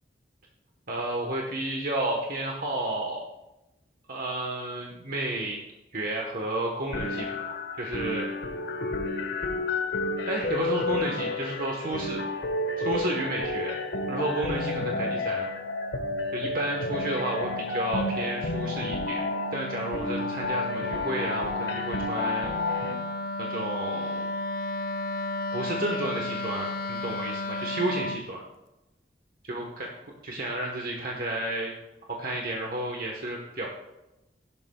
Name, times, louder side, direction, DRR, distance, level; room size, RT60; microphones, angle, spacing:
voice 1, 0.9-3.2 4.1-5.6 5.9-8.3 10.3-12.2 12.8-13.7 14.1-15.5 16.3-19.2 19.5-22.5 23.4-24.3 25.5-28.4 29.4-29.9 30.2-31.7 32.1-33.7, right 1 dB, 55° right, 0 dB, 1.2 m, -31 dB
sound 1, 6.9-22.9, left 2 dB, 75° left, 1.4 m, -31 dB
Wind instrument woodwind instrument, 15.3-28.3, left 2 dB, 55° left, 0.5 m, -35 dB
15.5 x 12.0 x 2.3 m, 0.98 s
head